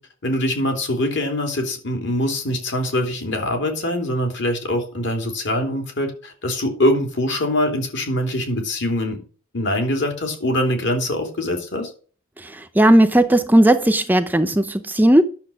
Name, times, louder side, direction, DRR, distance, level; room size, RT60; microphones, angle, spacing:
voice 1, 0.2-9.2 9.5-11.9, left 1 dB, 60° left, 3.1 m, -23 dB
voice 2, 12.4-15.2, right 1 dB, 10° right, 0.6 m, -16 dB
10.5 x 6.9 x 6.3 m
head